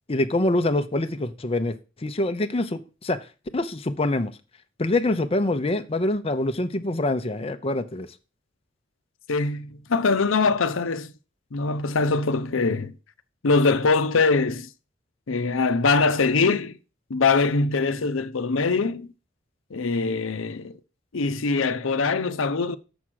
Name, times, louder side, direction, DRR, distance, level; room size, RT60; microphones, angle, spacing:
voice 1, 0.1-1.8 2.0-3.2 3.5-4.3 4.8-8.1, left 2 dB, 30° left, 0.6 m, -25 dB
voice 2, 9.3-11.1 11.5-12.9 13.4-14.7 15.3-16.8 17.1-19.1 19.7-20.8 21.1-22.8, left 4 dB, 85° left, 0.7 m, -23 dB
7.1 x 6.1 x 6.3 m
head